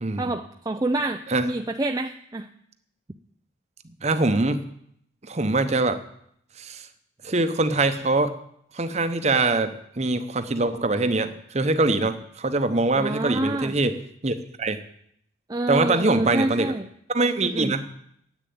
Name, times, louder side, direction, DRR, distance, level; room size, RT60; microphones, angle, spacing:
voice 1, 0.2-2.5 13.0-13.7 15.5-16.9 17.4-17.8, right 2 dB, 20° right, 5 dB, 0.4 m, -27 dB
voice 2, 4.0-4.6 5.3-6.0 6.6-6.9 7.2-8.3 8.7-13.9 14.2-14.8 15.7-16.7 17.1-17.8, right 2 dB, 35° right, 9 dB, 0.9 m, -23 dB
10.0 x 8.3 x 9.3 m, 0.71 s
head